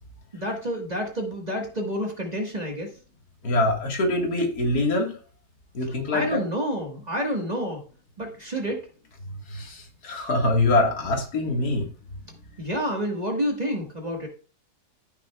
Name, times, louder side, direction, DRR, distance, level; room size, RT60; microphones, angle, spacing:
voice 1, 0.3-2.9 5.8-7.8 8.2-8.9 12.6-14.3, equal, 25° right, 1 dB, 1.5 m, -29 dB
voice 2, 3.4-5.1 5.7-6.4 9.5-11.9, left 2 dB, 70° left, 1 dB, 2.2 m, -24 dB
13.5 x 6.0 x 2.3 m, 0.38 s
omnidirectional pair, 1.7 m